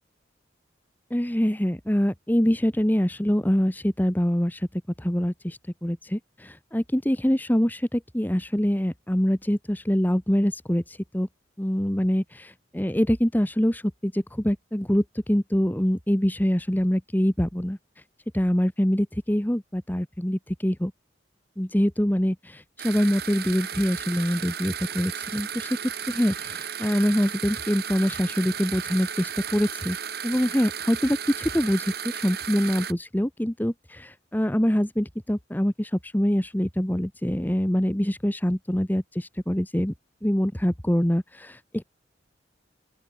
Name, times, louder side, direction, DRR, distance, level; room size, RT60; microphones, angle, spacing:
voice 1, 1.1-11.3 11.6-17.8 18.3-20.9 21.6-25.8 26.1-30.0 30.2-39.9 40.2-41.8, equal, 10° left, 1.0 m, -25 dB
sound 1, 22.8-32.9, right 8 dB, 55° right, 2.3 m, -34 dB
open air
head